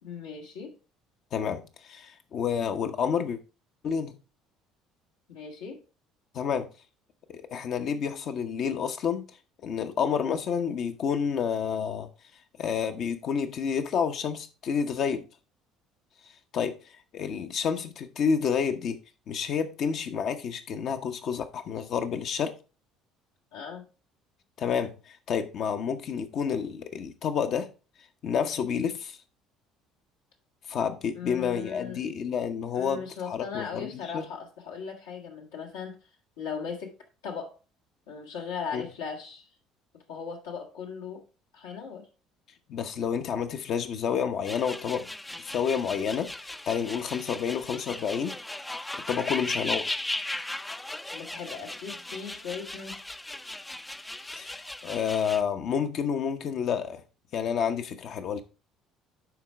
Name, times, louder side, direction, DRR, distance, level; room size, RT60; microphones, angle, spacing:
voice 1, 0.0-0.7 5.3-5.8 23.5-23.9 31.1-32.0 32.7-36.0 36.4-36.9 37.2-37.6 38.1-39.5 40.1-41.2 41.5-42.1 51.1-53.0, left 6 dB, 75° left, 1.8 m, -38 dB
voice 2, 1.3-3.4 3.8-4.1 6.3-6.7 7.3-9.2 9.6-12.1 12.6-15.3 16.5-16.7 17.1-19.0 19.3-22.5 24.6-27.7 28.2-29.2 30.7-34.3 38.7-38.8 42.7-45.1 45.4-48.3 48.9-50.0 54.2-57.0 57.3-58.4, left 7 dB, 50° left, 1.0 m, -29 dB
sound 1, 44.4-55.4, left 1 dB, 10° left, 0.5 m, -37 dB
11.0 x 4.6 x 3.5 m
figure-of-eight pair, 55°, 0 cm